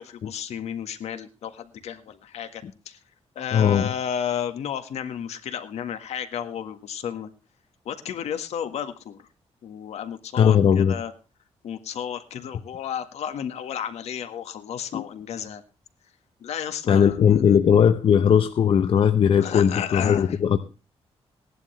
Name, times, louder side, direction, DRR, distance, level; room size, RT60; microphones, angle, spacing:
voice 1, 0.0-3.0 3.3-7.3 7.8-9.3 9.6-11.1 11.6-15.6 16.4-17.2 19.4-20.4, left 8 dB, 80° left, 9 dB, 1.7 m, -32 dB
voice 2, 3.5-3.9 10.3-10.9 14.9-15.0 16.9-20.6, left 8 dB, 55° left, 8 dB, 0.8 m, -19 dB
18.5 x 11.0 x 3.3 m, 0.31 s
cardioid pair, 140°, 11 cm